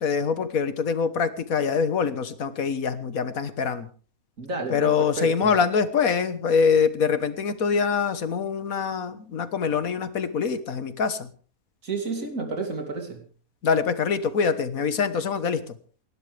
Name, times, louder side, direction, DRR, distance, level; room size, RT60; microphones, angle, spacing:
voice 1, 0.0-3.9 4.7-11.3 13.6-15.6, left 6 dB, 80° left, 11 dB, 1.7 m, -24 dB
voice 2, 4.4-5.5 11.8-13.2, right 3 dB, 70° right, 3 dB, 3.4 m, -31 dB
28.5 x 12.0 x 3.4 m, 0.42 s
omnidirectional pair, 1.5 m